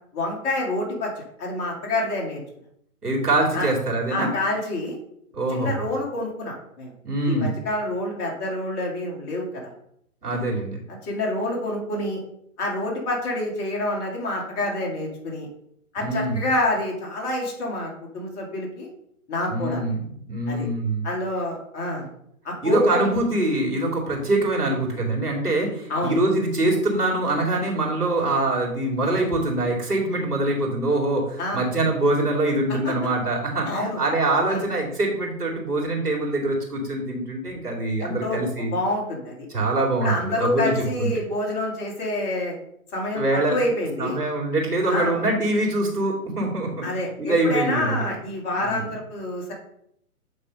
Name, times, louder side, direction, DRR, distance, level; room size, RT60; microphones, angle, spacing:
voice 1, 0.1-2.4 3.5-3.7 4.1-5.0 5.5-6.9 7.3-9.7 10.3-10.5 10.9-12.2 12.6-15.5 15.9-18.9 19.3-19.9 20.5-20.7 21.0-22.1 22.4-23.1 25.9-26.2 31.4-31.6 32.7-32.9 33.7-34.0 34.4-34.6 38.0-39.5 40.0-42.5 42.9-44.2 44.9-45.2 46.8-49.5, left 1 dB, 25° left, -2 dB, 2.3 m, -27 dB
voice 2, 3.0-4.3 5.3-5.8 7.0-7.5 10.2-10.8 16.0-16.4 19.5-21.1 22.6-38.7 39.5-40.7 41.0-41.1 43.1-43.6 44.0-48.0 48.6-48.8, right 2 dB, 90° right, -1 dB, 2.9 m, -24 dB
8.6 x 3.5 x 5.3 m, 0.73 s
figure-of-eight pair, 130°, 45 cm